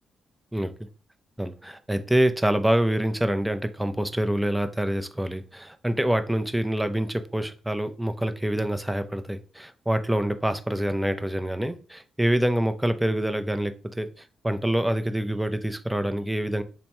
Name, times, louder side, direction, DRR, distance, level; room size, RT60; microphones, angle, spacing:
voice 1, 1.4-14.1 14.4-16.6, right 1 dB, 10° right, 0.5 m, -26 dB
3.4 x 2.1 x 4.2 m
supercardioid pair, 50°, 0 cm